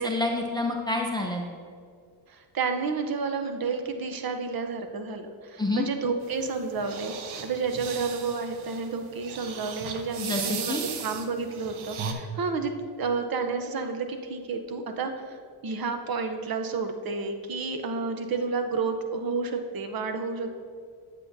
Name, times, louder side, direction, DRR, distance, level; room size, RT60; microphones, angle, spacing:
voice 1, 0.0-1.4 5.6-5.9 10.2-10.9, left 2 dB, 10° left, 1 dB, 0.6 m, -28 dB
voice 2, 2.3-7.1 7.4-12.7 13.0-20.6, right 4 dB, 45° right, 6 dB, 0.8 m, -30 dB
sound 1, 6.2-12.1, right 6 dB, 75° right, 0.9 m, -37 dB
8.2 x 8.0 x 2.7 m, 2.2 s
cardioid pair, 100°, 49 cm